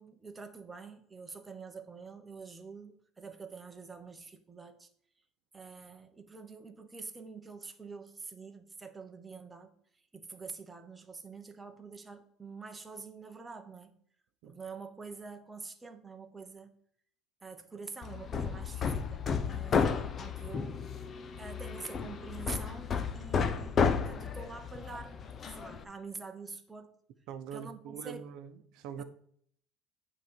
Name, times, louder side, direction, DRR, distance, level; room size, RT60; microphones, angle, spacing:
voice 1, 0.0-4.9 5.5-14.0 14.5-16.7 17.4-20.8 21.4-25.2 25.5-26.9 27.5-28.3 29.0-29.1, right 4 dB, 15° right, 1.0 m, -46 dB
Hammer, 18.0-25.8, left 6 dB, 30° left, 0.7 m, -32 dB
voice 2, 27.3-29.0, right 8 dB, 60° right, 0.8 m, -43 dB
9.2 x 4.0 x 7.2 m
cardioid pair, 140°, 0 cm